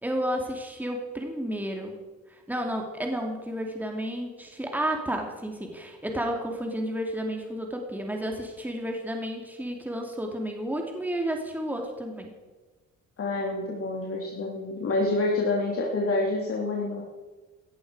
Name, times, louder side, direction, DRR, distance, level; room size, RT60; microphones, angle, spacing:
voice 1, 0.0-1.9 2.5-12.3, equal, 5° right, 2 dB, 2.7 m, -31 dB
voice 2, 13.2-17.0, left 2 dB, 50° left, -2 dB, 3.0 m, -27 dB
18.0 x 14.0 x 4.9 m, 1.3 s
cardioid pair, 90°, 30 cm